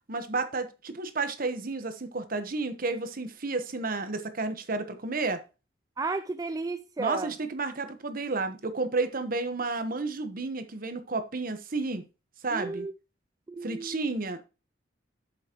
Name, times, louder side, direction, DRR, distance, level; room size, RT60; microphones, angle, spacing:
voice 1, 0.1-5.4 7.0-12.0 12.4-12.9 13.6-14.4, right 3 dB, 50° right, 1.1 m, -31 dB
voice 2, 6.0-7.3 12.5-12.9 13.5-14.1, right 3 dB, 20° right, 0.3 m, -33 dB
8.0 x 7.6 x 3.0 m
head